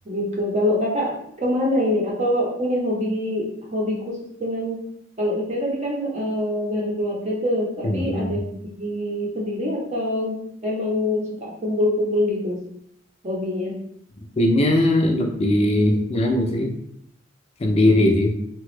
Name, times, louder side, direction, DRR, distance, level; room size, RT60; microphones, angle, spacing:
voice 1, 0.1-4.8 5.2-8.5 8.8-12.6 13.2-13.8, left 1 dB, 35° right, -2 dB, 0.7 m, -25 dB
voice 2, 7.8-8.4 14.4-16.7 17.6-18.4, left 1 dB, 30° left, 2 dB, 0.4 m, -19 dB
2.9 x 2.3 x 3.1 m, 0.71 s
head